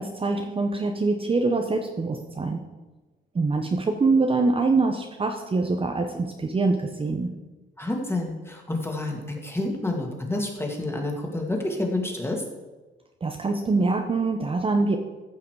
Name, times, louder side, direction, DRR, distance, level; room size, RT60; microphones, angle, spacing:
voice 1, 0.0-2.6 3.3-7.3 13.2-15.0, right 3 dB, 30° right, 4 dB, 0.9 m, -24 dB
voice 2, 7.8-12.4, left 2 dB, 10° left, 1 dB, 2.3 m, -29 dB
14.5 x 5.8 x 4.8 m, 1.2 s
cardioid pair, 90°, 20 cm